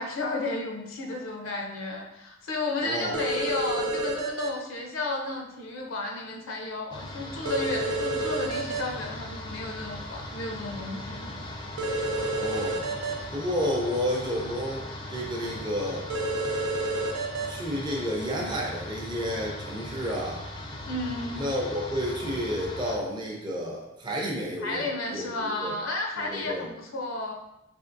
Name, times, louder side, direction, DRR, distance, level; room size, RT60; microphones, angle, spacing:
voice 1, 0.0-11.3 20.9-21.4 24.6-27.3, left 2 dB, 70° left, 1 dB, 0.5 m, -33 dB
voice 2, 2.8-3.2 12.3-12.8 13.3-16.1 17.5-20.4 21.3-25.8 26.2-26.7, equal, 20° right, -2 dB, 0.6 m, -31 dB
sound 1, 3.1-4.5 7.5-8.8 11.8-13.1 16.1-17.5, right 2 dB, 90° right, 0.5 m, -29 dB
sound 2, 6.9-23.0, left 1 dB, 25° left, 0.5 m, -39 dB
3.4 x 3.2 x 2.5 m, 0.86 s
head